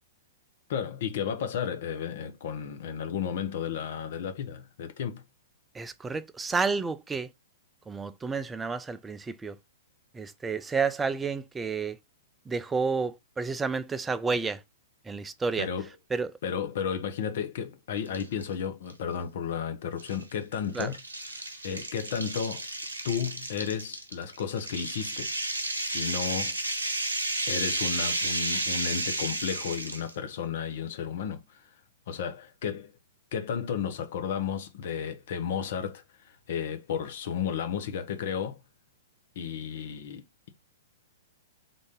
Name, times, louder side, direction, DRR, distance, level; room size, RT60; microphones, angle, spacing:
voice 1, 0.7-5.2 15.6-15.9 16.4-21.0 21.6-22.7 23.0-25.3 25.9-26.6 27.5-31.7 32.1-32.9 33.3-38.6 39.4-40.2, left 7 dB, 55° left, 0.7 m, -33 dB
voice 2, 5.7-7.3 7.9-9.6 10.1-12.0 12.5-14.6 15.1-15.7 16.1-16.3 20.7-20.9, right 4 dB, 10° right, 0.3 m, -30 dB
sound 1, 18.1-18.5 18.9-19.0 20.0-30.1, right 2 dB, 80° right, 0.9 m, -32 dB
3.8 x 2.6 x 3.6 m
figure-of-eight pair, 110°, 0 cm